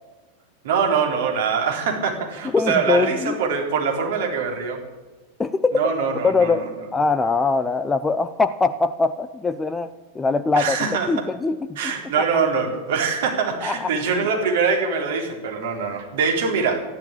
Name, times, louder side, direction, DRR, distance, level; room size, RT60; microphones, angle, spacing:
voice 1, 0.6-4.8 5.7-6.6 10.6-11.1 11.8-16.8, right 5 dB, 55° right, 1 dB, 3.7 m, -23 dB
voice 2, 2.5-3.4 5.4-5.8 6.2-10.8 11.1-11.8 12.2-12.3 13.6-13.9, left 4 dB, 15° left, 11 dB, 0.6 m, -22 dB
13.0 x 11.5 x 8.6 m, 1.3 s
figure-of-eight pair, 90°, 0 cm